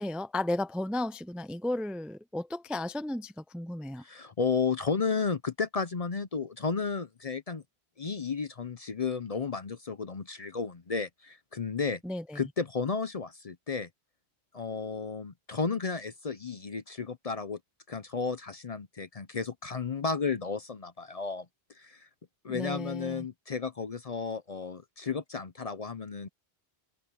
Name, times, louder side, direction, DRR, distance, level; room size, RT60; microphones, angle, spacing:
voice 1, 0.0-4.0 12.0-12.4 22.5-23.3, left 1 dB, ahead, 0.4 m, -34 dB
voice 2, 4.0-7.6 8.0-12.0 12.3-13.9 14.5-17.6 17.9-21.5 21.8-22.1 22.4-26.3, left 5 dB, 40° left, 0.6 m, -33 dB
omnidirectional pair, 1.1 m